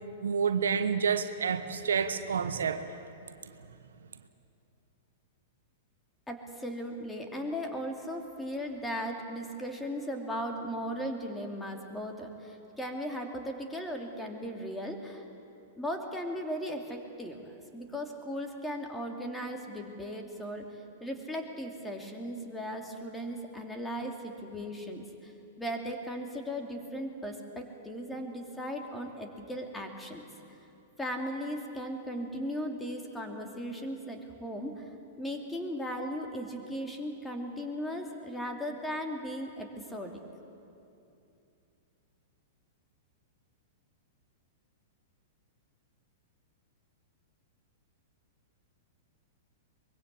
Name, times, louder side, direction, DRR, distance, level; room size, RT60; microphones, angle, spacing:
voice 1, 0.2-3.0, right 6 dB, 70° right, 10 dB, 1.0 m, -29 dB
voice 2, 6.3-15.2 15.8-17.4 17.7-20.6 21.0-25.3 25.6-30.2 31.0-34.9 35.2-40.1, equal, 10° left, 2 dB, 2.9 m, -37 dB
23.5 x 22.0 x 8.4 m, 2.7 s
figure-of-eight pair, 105°, 0 cm